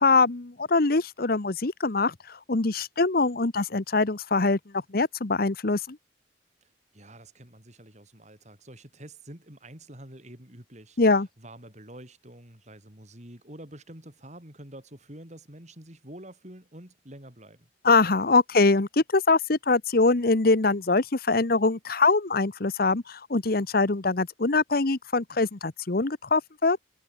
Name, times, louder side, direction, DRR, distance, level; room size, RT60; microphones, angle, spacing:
voice 1, 0.0-4.6 4.9-6.0 11.0-11.3 17.8-26.8, left 3 dB, 50° left, 1.0 m, -23 dB
voice 2, 6.6-17.7, right 1 dB, 40° right, 5.2 m, -47 dB
head